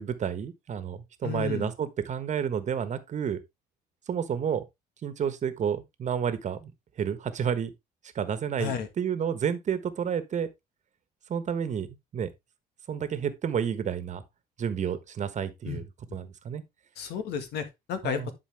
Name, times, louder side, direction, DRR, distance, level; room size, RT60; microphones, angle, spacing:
voice 1, 0.0-3.4 4.1-4.6 5.0-6.7 7.0-7.7 8.1-10.5 11.3-12.3 12.9-14.2 14.6-16.6 18.0-18.3, right 8 dB, 45° right, 1.3 m, -30 dB
voice 2, 1.2-1.7 8.6-8.9 15.7-15.8 17.0-18.3, left 7 dB, 75° left, 1.9 m, -32 dB
10.5 x 4.7 x 3.4 m
cardioid pair, 110°, 17 cm